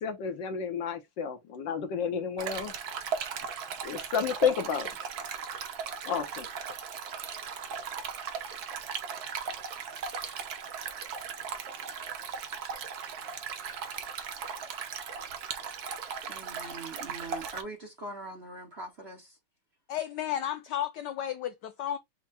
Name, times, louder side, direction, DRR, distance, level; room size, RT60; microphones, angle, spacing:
voice 1, 0.0-2.7 3.8-4.9 6.0-6.5, left 7 dB, 65° left, 1.3 m, -31 dB
Stream, 2.4-17.6, right 6 dB, 60° right, 1.1 m, -37 dB
voice 2, 16.3-19.3, right 2 dB, 40° right, 1.1 m, -42 dB
voice 3, 19.9-22.0, left 11 dB, 80° left, 0.9 m, -33 dB
5.9 x 2.2 x 4.1 m
omnidirectional pair, 2.4 m